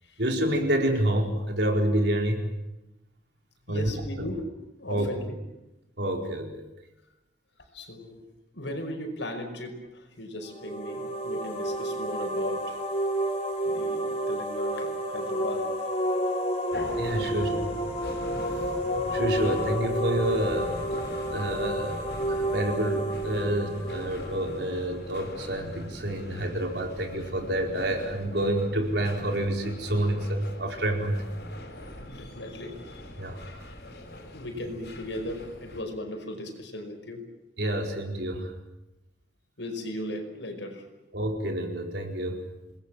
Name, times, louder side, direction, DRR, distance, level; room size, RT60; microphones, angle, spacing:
voice 1, 0.2-2.5 3.7-3.9 4.2-4.3 4.9-5.1 6.0-6.7 17.0-17.5 19.1-21.0 21.3-31.3 33.2-33.4 37.6-38.5 41.1-42.4, right 1 dB, 70° right, 2 dB, 4.7 m, -28 dB
voice 2, 3.7-4.5 4.8-5.4 7.7-8.3 8.5-12.8 13.7-15.7 17.2-17.7 32.1-33.0 34.3-37.2 39.6-40.9, left 1 dB, 85° left, 5 dB, 5.4 m, -37 dB
sound 1, 10.4-25.1, equal, 35° left, 3.9 m, -30 dB
sound 2, 16.7-35.8, left 1 dB, 60° left, 5.3 m, -42 dB
28.0 x 20.5 x 7.7 m, 0.97 s
head